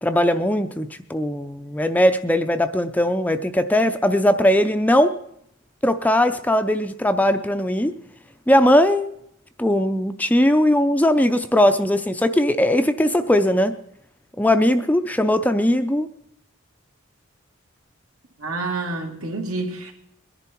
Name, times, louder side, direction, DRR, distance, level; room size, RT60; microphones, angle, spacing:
voice 1, 0.0-5.1 5.8-7.9 8.5-9.1 9.6-13.7 14.4-16.1, left 1 dB, 5° left, 0.4 m, -19 dB
voice 2, 18.4-19.9, right 3 dB, 80° right, 2.5 m, -28 dB
21.0 x 11.0 x 4.5 m
head